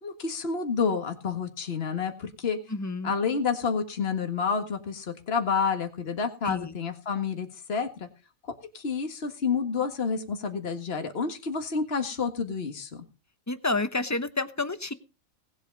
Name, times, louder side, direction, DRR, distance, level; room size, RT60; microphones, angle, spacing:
voice 1, 0.0-2.6 3.0-8.1 8.7-12.9, left 5 dB, 45° left, 6 dB, 2.0 m, -29 dB
voice 2, 2.7-3.1 6.4-6.7 13.5-14.9, left 3 dB, 15° left, 12 dB, 0.8 m, -29 dB
19.0 x 8.4 x 5.3 m, 0.31 s
omnidirectional pair, 1.4 m